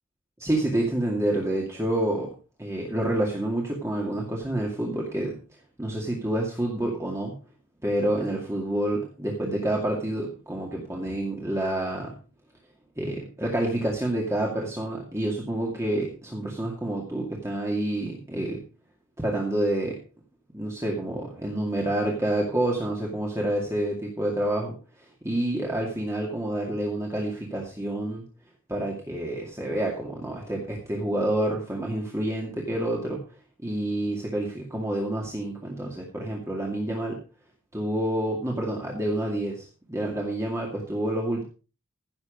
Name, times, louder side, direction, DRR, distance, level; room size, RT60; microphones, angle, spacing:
voice 1, 0.4-2.3 2.6-5.4 5.8-7.4 7.8-12.2 13.0-18.6 19.2-20.0 20.5-24.7 25.2-28.2 28.7-33.2 33.6-37.2 37.7-41.4, right 1 dB, 15° right, -1 dB, 2.2 m, -28 dB
15.5 x 7.2 x 5.1 m, 0.35 s
head